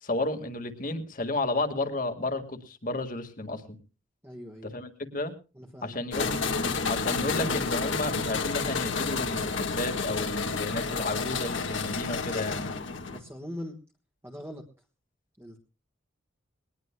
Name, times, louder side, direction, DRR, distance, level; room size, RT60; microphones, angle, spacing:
voice 1, 0.0-3.6 4.7-5.3 5.8-6.4 6.9-12.7, left 2 dB, 40° left, 7 dB, 1.7 m, -32 dB
voice 2, 4.2-4.7 5.5-6.0 13.1-13.8 14.2-14.7 15.4-15.6, equal, 10° right, 1 dB, 1.4 m, -41 dB
sound 1, 6.1-13.2, left 4 dB, 70° left, 1.6 m, -30 dB
21.5 x 19.0 x 2.2 m, 0.32 s
head